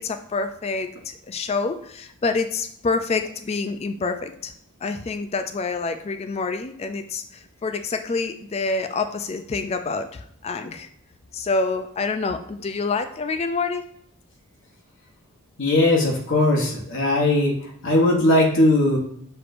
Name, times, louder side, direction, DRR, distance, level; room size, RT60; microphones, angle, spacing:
voice 1, 0.0-4.5 4.8-10.9 11.3-13.8, left 4 dB, 30° left, 8 dB, 0.3 m, -27 dB
voice 2, 15.6-17.5 17.8-19.0, left 1 dB, 55° left, -2 dB, 0.9 m, -19 dB
6.6 x 3.0 x 2.5 m, 0.68 s
head